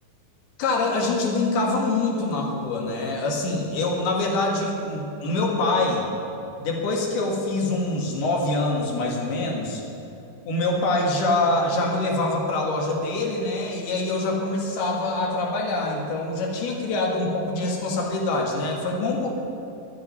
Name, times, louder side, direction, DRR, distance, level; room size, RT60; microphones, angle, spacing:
voice 1, 0.6-6.1 6.6-9.8 10.5-19.3, left 2 dB, 85° left, -1 dB, 4.0 m, -25 dB
11.5 x 9.4 x 9.7 m, 2.8 s
omnidirectional pair, 4.4 m